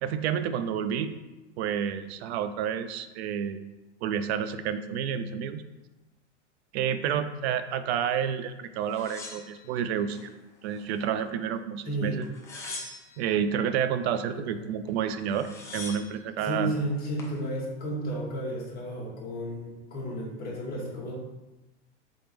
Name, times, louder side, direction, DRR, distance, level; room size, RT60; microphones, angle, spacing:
voice 1, 0.0-1.1 1.6-3.6 4.0-5.6 6.7-10.3 10.6-12.3 13.2-16.7, right 8 dB, 60° right, 11 dB, 0.5 m, -29 dB
sound 1, 8.9-10.3 10.7-11.5 12.2-13.3 14.9-15.0 15.2-16.2 16.9-17.4, left 2 dB, 10° left, 0.3 m, -42 dB
voice 2, 11.8-12.2 14.3-14.7 16.4-21.1, right 1 dB, 25° left, -3 dB, 1.3 m, -32 dB
3.7 x 3.5 x 3.4 m, 1.1 s
hypercardioid pair, 130°, 36 cm